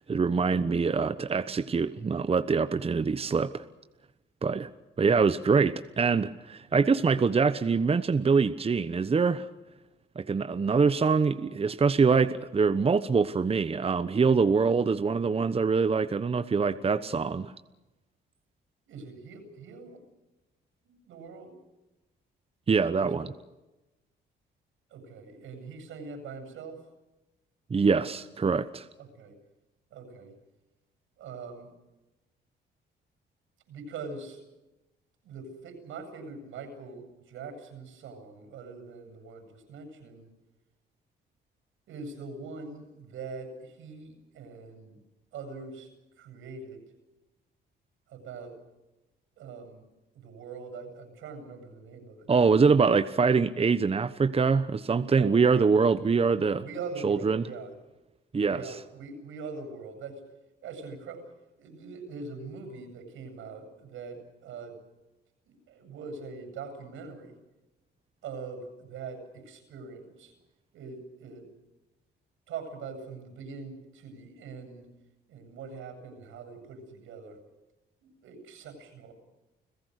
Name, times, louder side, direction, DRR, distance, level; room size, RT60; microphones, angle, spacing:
voice 1, 0.1-3.6 4.4-4.7 5.0-9.5 10.2-17.5 22.7-23.2 27.7-28.9 52.3-56.6 57.0-57.4 58.3-58.6, right 5 dB, 30° right, 11 dB, 1.1 m, -24 dB
voice 2, 18.9-20.0 20.8-21.5 23.0-23.2 24.9-26.8 29.0-29.3 29.9-30.3 31.2-31.7 33.7-34.4 35.2-40.3 41.9-45.0 45.3-45.9 46.2-46.8 48.1-48.6 49.4-49.9 50.1-52.3 55.0-55.7 56.0-56.3 56.6-57.7 58.5-60.2 60.6-61.2 61.6-64.8 65.5-67.3 68.2-70.3 70.7-71.5 72.5-74.9 75.3-77.4 78.0-79.1, right 4 dB, 85° right, 7 dB, 7.9 m, -42 dB
30.0 x 17.0 x 6.6 m, 1.0 s
cardioid pair, 90°, 20 cm